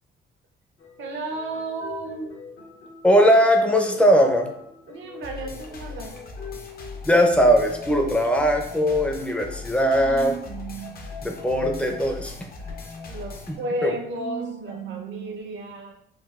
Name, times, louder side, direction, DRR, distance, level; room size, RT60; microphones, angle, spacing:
sound 1, 0.8-7.0 7.4-15.4, right 2 dB, 75° left, 1.1 m, -42 dB
voice 1, 1.0-2.3 4.9-6.2 13.1-15.9, right 1 dB, 70° right, 1 dB, 0.7 m, -33 dB
voice 2, 3.0-4.5 7.0-10.4 11.2-12.3 13.5-13.9, equal, 5° left, 3 dB, 0.5 m, -19 dB
sound 2, 5.2-13.6, left 4 dB, 50° left, 0.6 m, -39 dB
3.8 x 2.3 x 2.4 m, 0.73 s
cardioid pair, 90°, 20 cm